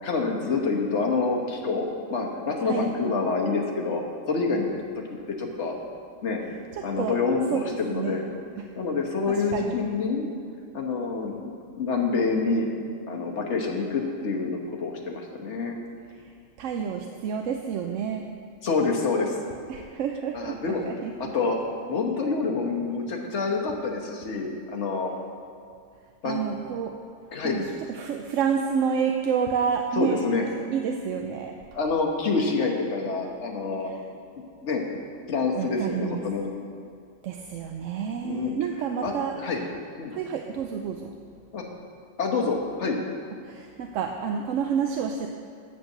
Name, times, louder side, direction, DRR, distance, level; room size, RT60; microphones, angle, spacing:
voice 1, 0.0-4.0 4.3-4.7 5.3-5.7 6.2-6.4 6.8-8.2 8.8-10.3 10.7-11.5 11.8-12.7 13.1-15.7 18.6-19.4 20.3-20.8 21.2-21.6 21.9-25.1 26.2-26.4 27.3-27.6 30.0-30.4 31.7-33.9 34.6-34.8 35.3-36.5 38.2-38.5 39.0-39.6 40.0-40.1 41.5-41.6 42.2-43.0, left 4 dB, 65° left, 1 dB, 1.4 m, -27 dB
voice 2, 6.7-7.2 7.5-7.6 7.9-8.2 8.6-8.7 9.3-9.8 16.1-16.3 16.6-18.3 19.7-21.3 26.2-27.0 27.4-30.2 30.7-31.6 33.8-34.0 35.5-36.2 37.2-39.4 40.1-41.1 43.4-45.3, right 7 dB, 90° right, 4 dB, 0.9 m, -29 dB
8.7 x 6.7 x 6.6 m, 2.4 s
omnidirectional pair, 1.3 m